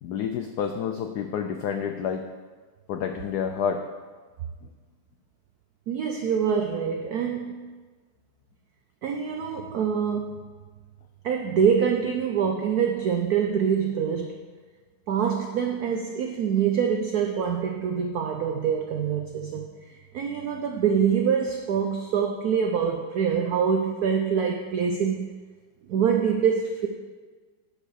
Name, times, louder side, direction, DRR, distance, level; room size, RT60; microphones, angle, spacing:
voice 1, 0.0-2.3 2.9-3.8 4.6-4.7, left 7 dB, 85° left, 6 dB, 0.8 m, -29 dB
voice 2, 5.9-7.7 9.0-10.5 11.2-14.4 15.1-19.7 20.1-25.3 25.9-26.9, right 7 dB, 80° right, 4 dB, 0.8 m, -25 dB
8.8 x 4.9 x 6.4 m, 1.4 s
omnidirectional pair, 2.3 m